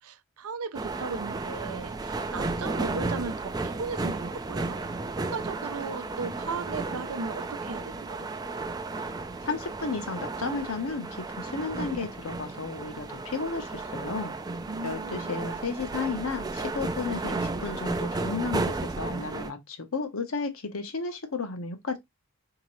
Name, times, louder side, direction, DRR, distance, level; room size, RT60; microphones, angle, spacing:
voice 1, 0.0-4.8 5.2-8.3 14.7-15.5, right 4 dB, 75° right, 0.5 m, -36 dB
sound 1, 0.7-19.5, right 3 dB, 15° right, 0.3 m, -33 dB
voice 2, 9.4-14.4 14.8-22.0, left 4 dB, 65° left, 0.9 m, -33 dB
3.8 x 2.9 x 3.0 m
head